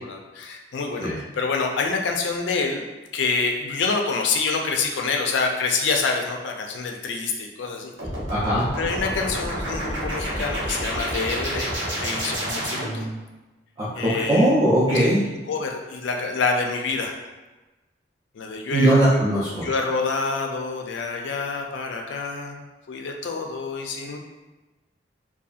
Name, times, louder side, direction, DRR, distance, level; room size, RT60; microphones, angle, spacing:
voice 1, 0.0-2.8 3.1-7.9 8.8-13.1 13.9-14.5 14.9-15.1 15.5-17.2 18.4-19.0 19.6-24.2, left 4 dB, 90° left, 2 dB, 0.4 m, -27 dB
sound 1, 8.0-13.2, right 1 dB, 70° right, 0.8 m, -29 dB
voice 2, 8.3-8.7 13.8-15.3 18.7-19.7, right 1 dB, 25° right, -8 dB, 0.4 m, -20 dB
2.7 x 2.3 x 2.4 m, 1.2 s
head